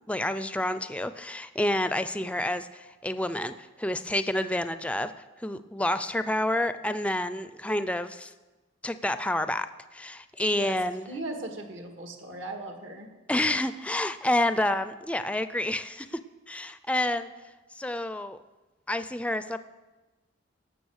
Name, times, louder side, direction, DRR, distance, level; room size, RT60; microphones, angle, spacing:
voice 1, 0.1-5.1 5.4-8.3 8.8-11.1 13.3-16.2 16.5-17.3 17.7-18.4 18.9-19.6, left 1 dB, 5° left, 12 dB, 0.4 m, -29 dB
voice 2, 11.1-13.1, right 2 dB, 75° right, 3 dB, 2.0 m, -38 dB
18.0 x 6.9 x 6.4 m, 1.2 s
head